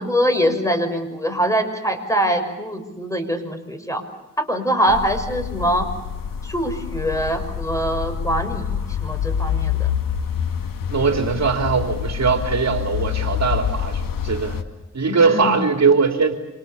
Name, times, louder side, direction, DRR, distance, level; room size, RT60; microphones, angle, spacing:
voice 1, 0.0-4.0 4.4-5.9 6.4-9.9 15.1-15.6, equal, 10° left, 6 dB, 6.2 m, -23 dB
sound 1, 4.9-14.6, left 8 dB, 85° left, 2.1 m, -26 dB
voice 2, 10.9-14.6 14.9-16.3, right 5 dB, 55° right, 5 dB, 3.5 m, -20 dB
28.5 x 27.5 x 7.2 m, 1.0 s
cardioid pair, 95°, 33 cm